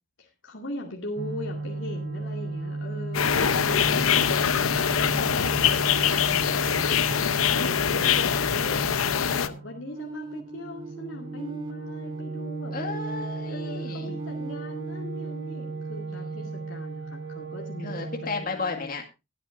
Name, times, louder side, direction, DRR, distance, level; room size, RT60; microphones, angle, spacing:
voice 1, 0.2-12.8 13.5-19.0, left 1 dB, 65° left, 0 dB, 2.3 m, -40 dB
sound 1, 1.2-18.4, right 3 dB, 60° right, 1.3 m, -35 dB
sound 2, 3.1-9.5, left 8 dB, 90° left, 0.7 m, -23 dB
sound 3, 9.9-16.7, right 3 dB, 20° right, 0.5 m, -41 dB
voice 2, 12.7-14.1 16.1-16.3 17.8-19.1, left 4 dB, 45° left, 2 dB, 2.0 m, -33 dB
21.5 x 8.8 x 2.6 m, 0.26 s
head